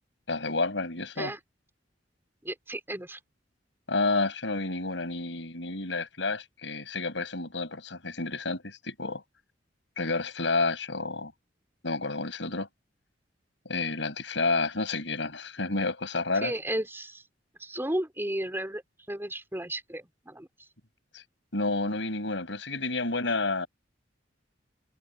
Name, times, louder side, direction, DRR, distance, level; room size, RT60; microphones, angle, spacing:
voice 1, 0.3-1.3 3.9-9.2 10.0-11.3 11.8-12.7 13.7-16.5 21.1-21.2 21.5-23.7, left 3 dB, 80° left, 5.7 m, -30 dB
voice 2, 2.4-3.2 16.4-17.2 17.6-18.8 19.1-20.5, right 1 dB, 15° right, 3.4 m, -33 dB
head